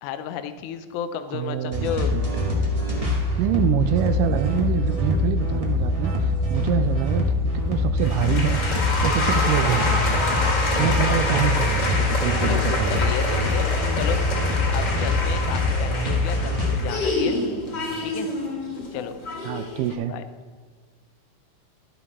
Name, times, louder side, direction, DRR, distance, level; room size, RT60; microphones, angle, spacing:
voice 1, 0.0-2.1 10.7-11.2 12.2-13.7 13.9-14.2 14.7-17.4 18.0-18.3 18.9-19.2 20.1-20.2, left 9 dB, 80° left, 10 dB, 1.8 m, -32 dB
voice 2, 1.3-2.4 3.4-7.3 7.7-10.2 10.8-13.0 19.4-20.2, right 11 dB, 80° right, 10 dB, 1.9 m, -26 dB
sound 1, 1.7-16.8, left 2 dB, 60° right, 0.3 m, -24 dB
sound 2, 8.0-19.9, left 2 dB, 40° left, 1.8 m, -27 dB
12.0 x 10.0 x 4.2 m, 1.5 s
omnidirectional pair, 4.2 m